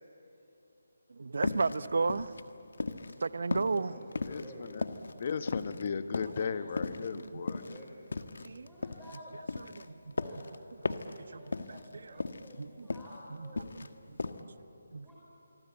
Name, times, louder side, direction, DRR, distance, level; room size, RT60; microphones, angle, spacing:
voice 1, 1.1-2.3 3.2-4.0 7.1-7.4 8.4-8.7 9.6-10.1 10.8-12.2 12.6-12.9 13.4-13.5 14.1-14.2 14.9-15.1, right 4 dB, 65° right, 0.8 m, -34 dB
sound 1, 1.4-3.2 3.5-5.9 6.1-6.5 6.8-9.2 9.5-10.6 10.8-11.2 11.5-11.9 12.2-13.2 13.4-13.9 14.2-14.4, left 3 dB, 70° left, 1.4 m, -37 dB
voice 2, 3.7-4.9 6.4-6.6 7.4-7.9 8.6-9.6 10.2-10.4 11.2-13.8 15.0-15.1, equal, ahead, 4.2 m, -51 dB
voice 3, 4.3-4.8 5.2-7.6, left 6 dB, 45° left, 1.3 m, -35 dB
26.5 x 24.0 x 8.8 m
figure-of-eight pair, 155°, 0 cm